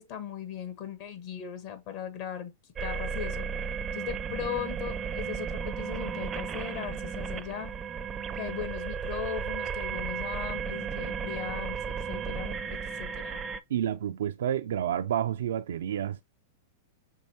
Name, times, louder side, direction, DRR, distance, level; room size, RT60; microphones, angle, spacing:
voice 1, 0.0-2.5 2.8-3.5 3.9-7.7 8.4-13.4, left 9 dB, 55° left, 1.5 m, -38 dB
sound 1, 2.8-13.6, right 6 dB, 20° right, 0.5 m, -34 dB
voice 2, 13.7-16.2, right 10 dB, 75° right, 0.4 m, -29 dB
5.6 x 3.1 x 3.0 m
hypercardioid pair, 120°, 0 cm